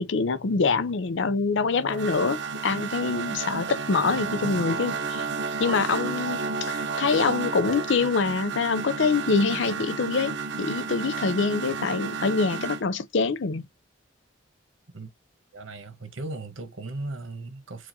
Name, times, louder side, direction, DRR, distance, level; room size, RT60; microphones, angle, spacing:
voice 1, 0.0-5.3 5.6-13.7, left 4 dB, 70° left, 0.6 m, -25 dB
sound 1, 1.7-12.8, right 4 dB, 60° right, 0.8 m, -32 dB
voice 2, 15.5-17.9, right 2 dB, 85° right, 1.2 m, -37 dB
4.7 x 2.5 x 2.8 m
head